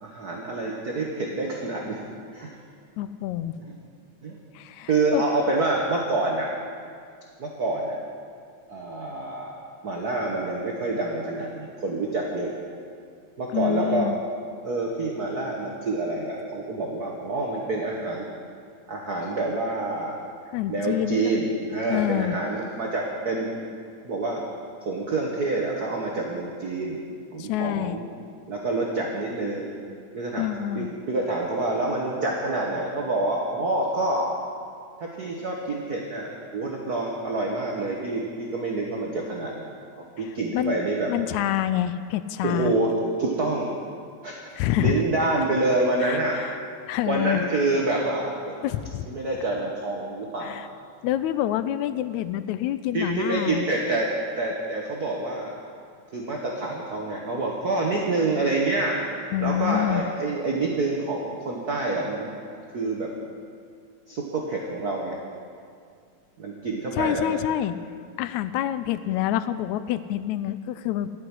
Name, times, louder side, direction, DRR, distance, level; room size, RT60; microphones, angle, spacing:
voice 1, 0.0-2.0 2.3-2.5 3.6-3.8 4.2-4.4 4.9-6.5 7.4-8.0 8.7-9.5 9.8-12.7 13.4-14.1 14.6-18.2 18.9-20.2 20.7-23.5 24.0-24.4 24.8-27.0 27.3-28.0 28.5-29.7 30.1-30.4 30.7-34.3 35.0-39.7 40.0-41.1 42.4-43.7 44.2-44.4 44.8-46.4 47.0-48.6 49.1-50.6 52.9-54.1 54.4-55.5 56.1-59.0 59.4-63.1 64.1-65.2 66.4-67.4, right 2 dB, 50° right, -1 dB, 1.2 m, -27 dB
voice 2, 3.0-3.6 4.6-5.2 13.5-14.2 20.5-21.3 21.9-22.4 27.4-28.0 30.4-30.9 40.5-40.8 41.1-42.7 44.5-45.0 45.3-45.4 46.0-46.6 46.9-47.5 48.6-49.1 50.4-50.7 51.0-53.7 59.3-60.0 67.0-67.8 68.2-71.1, left 12 dB, 80° left, 13 dB, 1.9 m, -27 dB
13.0 x 7.9 x 9.6 m, 2.2 s
omnidirectional pair, 3.4 m